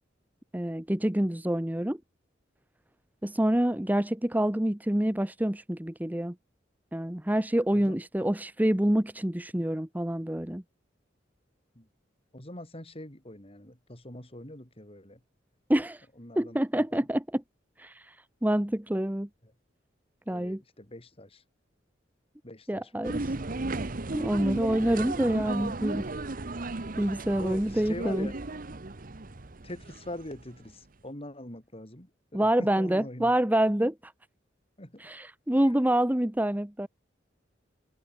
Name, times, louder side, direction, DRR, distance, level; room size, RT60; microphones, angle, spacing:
voice 1, 0.5-2.0 3.2-6.3 6.9-10.6 15.7-16.0 16.4-17.4 17.8-18.1 18.4-19.3 20.3-20.6 22.7-23.2 24.1-26.1 27.0-28.3 32.3-34.1 35.0-36.9, right 1 dB, 10° right, 0.8 m, -27 dB
voice 2, 12.3-15.2 16.2-17.1 19.4-19.5 20.3-21.4 22.4-23.3 27.4-28.4 29.6-33.4 34.8-35.1 35.5-35.7, left 1 dB, 35° left, 4.8 m, -43 dB
sound 1, 23.0-30.5, right 2 dB, 50° right, 1.1 m, -35 dB
head